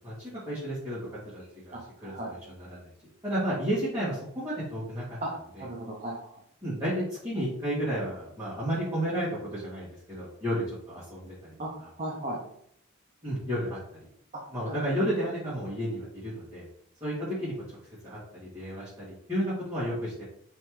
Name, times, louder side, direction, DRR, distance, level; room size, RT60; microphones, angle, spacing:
voice 1, 0.0-2.9 3.2-5.2 5.5-5.6 6.6-11.9 13.2-13.8 14.5-16.6 17.0-17.5 18.0-20.2, equal, 15° right, -13 dB, 1.6 m, -32 dB
voice 2, 1.7-2.3 5.2-5.3 5.6-6.3 11.6-11.7 12.0-12.4 14.3-14.7, right 1 dB, 35° right, -2 dB, 0.6 m, -36 dB
3.5 x 3.1 x 3.1 m, 0.69 s
head